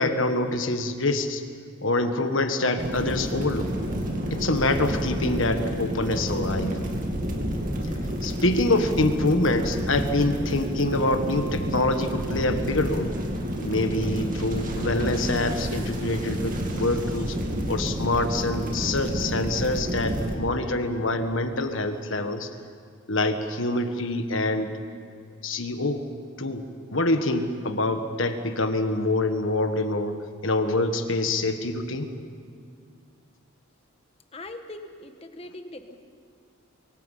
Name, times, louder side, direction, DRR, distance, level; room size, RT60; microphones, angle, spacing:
voice 1, 0.0-1.4 1.8-3.7 4.3-6.8 8.2-13.1 13.6-17.4 17.7-22.5 23.1-24.7 25.4-26.0 26.4-26.7 26.9-30.1 30.4-32.1, left 2 dB, 65° left, 7 dB, 1.5 m, -25 dB
sound 1, 2.8-20.4, equal, 40° right, 2.4 m, -29 dB
voice 2, 34.3-36.0, left 2 dB, 25° left, 6 dB, 1.3 m, -41 dB
24.5 x 23.5 x 5.7 m, 2.2 s
head